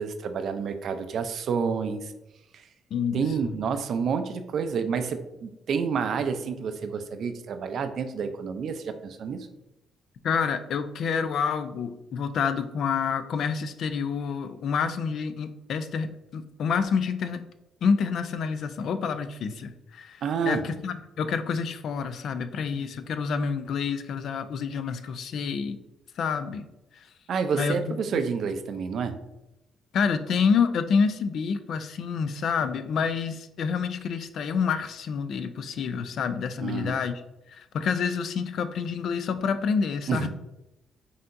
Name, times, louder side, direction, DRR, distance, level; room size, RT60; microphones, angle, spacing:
voice 1, 0.0-2.1 2.5-2.6 3.1-9.5 20.2-20.6 27.3-29.2 36.6-36.9 40.1-40.3, right 6 dB, 65° right, 8 dB, 0.4 m, -29 dB
voice 2, 2.9-3.5 10.2-17.4 17.8-25.8 26.2-26.6 27.0-27.1 27.5-28.2 29.9-37.2 37.5-40.3, left 6 dB, 70° left, 10 dB, 0.4 m, -28 dB
5.7 x 2.8 x 2.5 m, 0.93 s
cardioid pair, 90°, 0 cm